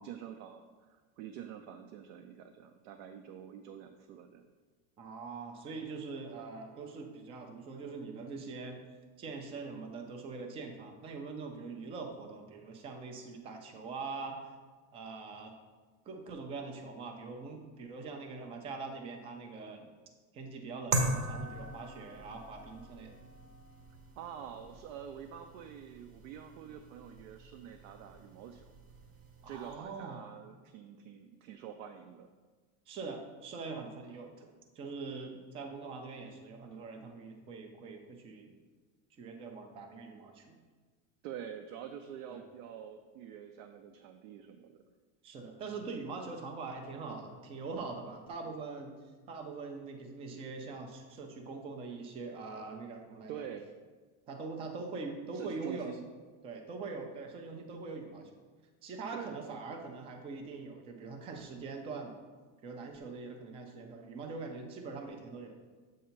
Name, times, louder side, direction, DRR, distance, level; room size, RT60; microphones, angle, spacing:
voice 1, 0.0-4.4 24.2-28.7 29.5-32.3 41.2-44.8 53.3-53.6 55.3-56.1 59.1-59.6, right 9 dB, 65° right, 5 dB, 0.6 m, -46 dB
voice 2, 5.0-8.8 9.2-14.4 14.9-15.5 16.1-19.9 20.3-23.2 29.4-30.2 32.9-34.5 34.8-38.5 39.2-40.6 42.3-42.4 45.2-49.0 49.3-53.4 54.3-55.9 56.4-58.3 58.8-62.1 62.6-65.6, right 4 dB, 15° right, 4 dB, 0.3 m, -43 dB
sound 1, 20.9-29.7, right 2 dB, 35° right, 0.8 m, -40 dB
7.7 x 2.8 x 5.6 m, 1.4 s
supercardioid pair, 145°, 42 cm